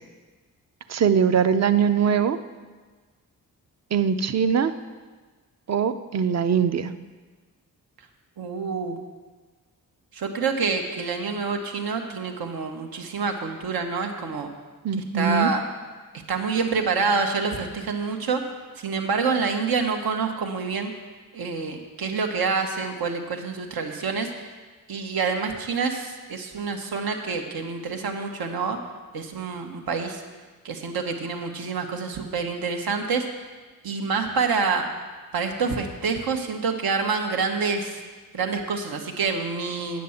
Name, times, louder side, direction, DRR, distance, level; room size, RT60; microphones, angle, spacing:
voice 1, 0.9-2.4 3.9-4.7 5.7-6.9 14.8-15.5, right 7 dB, 45° right, 11 dB, 0.6 m, -21 dB
voice 2, 8.4-9.0 10.1-14.5 15.1-15.6 16.3-18.4 18.8-20.9 21.3-24.5 24.9-28.8 29.1-30.2 30.6-33.2 33.8-34.9 35.3-38.0 38.3-40.0, right 5 dB, 85° right, 4 dB, 1.3 m, -27 dB
9.3 x 7.6 x 7.1 m, 1.4 s
wide cardioid pair, 105°, 36 cm